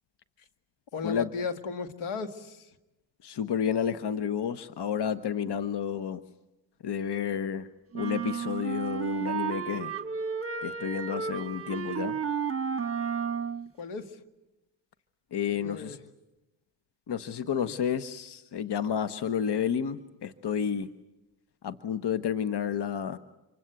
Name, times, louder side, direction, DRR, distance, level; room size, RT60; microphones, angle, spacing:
voice 1, 0.9-2.7 13.8-14.2 15.5-16.0 17.6-17.7, left 4 dB, 75° left, 9 dB, 2.1 m, -36 dB
voice 2, 3.2-6.2 6.8-7.7 7.9-9.9 10.6-12.2 15.3-16.0 17.1-20.9 21.6-23.2, left 8 dB, 55° left, 11 dB, 1.3 m, -30 dB
sound 1, 7.9-13.7, right 6 dB, 25° right, 1.6 m, -32 dB
27.0 x 24.5 x 8.2 m, 1.0 s
supercardioid pair, 55°, 49 cm